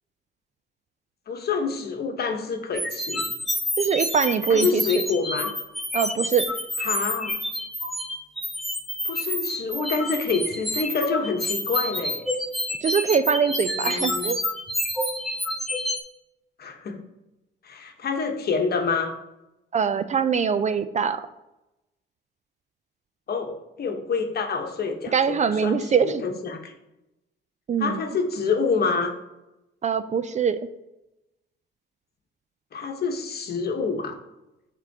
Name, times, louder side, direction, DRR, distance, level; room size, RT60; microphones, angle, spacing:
voice 1, 1.3-3.3 4.5-5.5 6.8-7.3 9.0-12.2 13.7-14.3 16.6-17.0 17.6-19.1 23.3-26.7 27.8-29.1 32.7-34.2, left 5 dB, 50° left, 4 dB, 1.1 m, -27 dB
sound 1, 2.7-16.0, left 1 dB, ahead, 1.0 m, -29 dB
voice 2, 3.8-4.8 5.9-6.5 12.8-14.4 19.7-21.2 25.1-26.2 27.7-28.0 29.8-30.6, right 6 dB, 35° right, 11 dB, 0.4 m, -23 dB
11.0 x 3.7 x 2.8 m, 0.93 s
cardioid pair, 90°, 20 cm